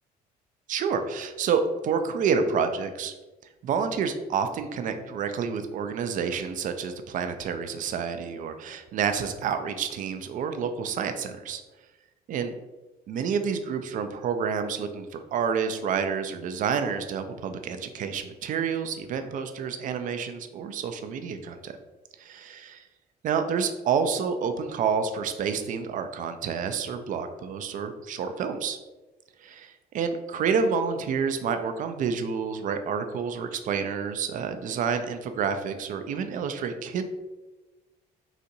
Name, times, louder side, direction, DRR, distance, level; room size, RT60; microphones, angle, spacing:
voice 1, 0.7-3.1 3.6-11.6 12.3-12.5 13.1-21.7 22.2-22.8 23.2-28.8 29.4-37.0, right 6 dB, 50° right, 8 dB, 0.4 m, -29 dB
4.0 x 2.5 x 2.7 m, 1.2 s
cardioid pair, 110°, 17 cm